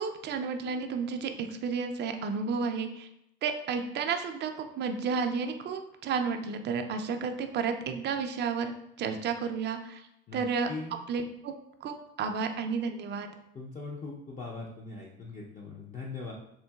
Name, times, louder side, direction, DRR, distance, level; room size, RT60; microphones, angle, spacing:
voice 1, 0.0-3.1 3.4-10.0 10.3-10.7 11.1-11.5 11.8-13.3, right 5 dB, 35° right, 6 dB, 0.4 m, -32 dB
voice 2, 10.3-11.0 13.5-16.3, left 3 dB, 25° left, -2 dB, 0.5 m, -41 dB
3.7 x 2.5 x 2.3 m, 0.78 s
supercardioid pair, 85°, 30 cm